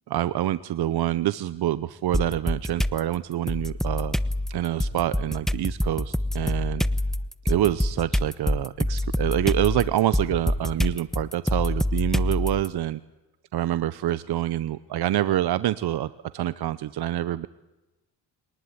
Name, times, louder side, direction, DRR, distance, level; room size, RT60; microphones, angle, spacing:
voice 1, 0.1-4.2 4.5-6.8 7.4-13.0 13.5-17.5, right 13 dB, 70° right, 15 dB, 0.8 m, -26 dB
sound 1, 2.1-3.0 3.5-12.7, left 1 dB, ahead, 0.8 m, -26 dB
23.0 x 19.5 x 9.7 m, 1.1 s
cardioid pair, 95°, 41 cm